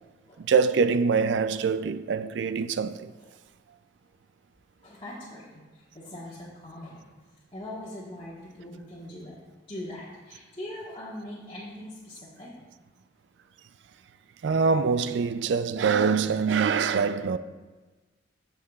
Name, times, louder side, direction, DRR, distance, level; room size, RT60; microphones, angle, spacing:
voice 1, 0.4-3.1 14.4-17.4, right 5 dB, 70° right, 0.4 m, -24 dB
voice 2, 4.8-7.1 7.5-9.4 9.7-12.5, left 1 dB, 30° left, 1.3 m, -41 dB
14.5 x 5.7 x 2.4 m
head